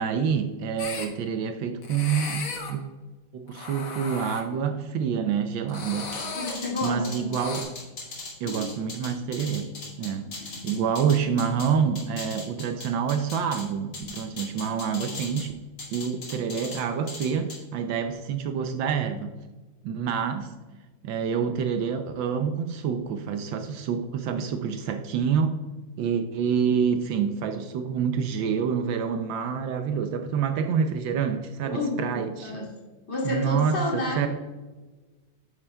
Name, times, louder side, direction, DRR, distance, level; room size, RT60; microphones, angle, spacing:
voice 1, 0.0-2.4 2.7-2.9 3.3-6.1 6.8-7.6 8.4-9.7 10.0-15.6 15.9-19.3 19.8-20.5 21.0-25.6 26.0-32.5 33.2-34.3, right 7 dB, 80° right, 6 dB, 1.3 m, -27 dB
sound 1, 0.8-1.0 1.8-2.7 3.5-4.4 5.7-6.5 7.4-7.6, left 4 dB, 85° left, 2.0 m, -35 dB
sound 2, 6.1-11.7 12.0-13.6 13.9-15.5 15.8-16.8 17.1-17.6, left 3 dB, 60° left, 2.9 m, -38 dB
voice 2, 6.3-7.3 8.5-8.7 10.5-10.9 31.6-32.7 33.1-34.3, left 2 dB, 35° left, -4 dB, 2.7 m, -30 dB
9.7 x 7.9 x 2.2 m, 1.3 s
omnidirectional pair, 2.1 m